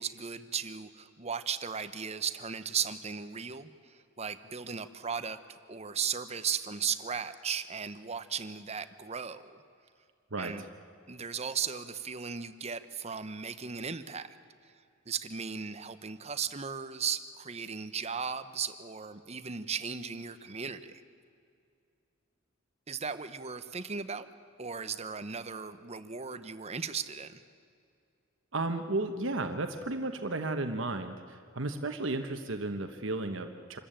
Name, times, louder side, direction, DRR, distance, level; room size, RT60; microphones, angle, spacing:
voice 1, 0.0-9.6 10.4-10.6 11.1-14.3 15.1-21.0 22.9-24.3 24.6-27.4, right 6 dB, 30° right, 12 dB, 0.8 m, -36 dB
voice 2, 10.3-10.7 28.5-33.8, right 2 dB, 70° right, 6 dB, 1.1 m, -34 dB
26.5 x 14.0 x 8.9 m, 2.4 s
head